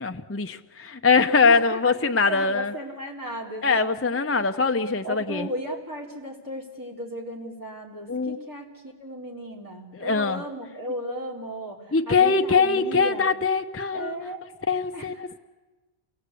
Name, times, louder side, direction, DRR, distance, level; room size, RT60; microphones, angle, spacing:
voice 1, 0.0-2.7 3.6-5.5 8.1-8.4 9.9-10.4 11.9-14.2 14.7-15.4, left 4 dB, 15° left, 7 dB, 0.5 m, -22 dB
voice 2, 1.5-1.8 2.3-3.9 5.0-13.3 13.9-14.4 14.9-15.1, equal, 15° right, -3 dB, 4.0 m, -35 dB
28.5 x 17.5 x 8.4 m, 1.2 s
omnidirectional pair, 1.1 m